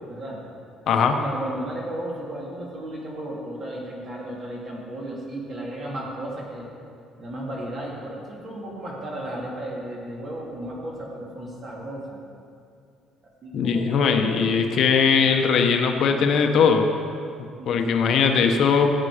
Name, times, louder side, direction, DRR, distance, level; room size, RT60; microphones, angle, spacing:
voice 1, 0.1-0.4 1.2-6.7 7.2-12.2 13.4-14.5 17.6-18.1, right 1 dB, 35° right, -3 dB, 2.7 m, -34 dB
voice 2, 0.9-1.2 13.5-16.9 17.7-18.9, left 6 dB, 55° left, 4 dB, 0.9 m, -20 dB
16.0 x 8.5 x 5.0 m, 2.5 s
cardioid pair, 155°, 0 cm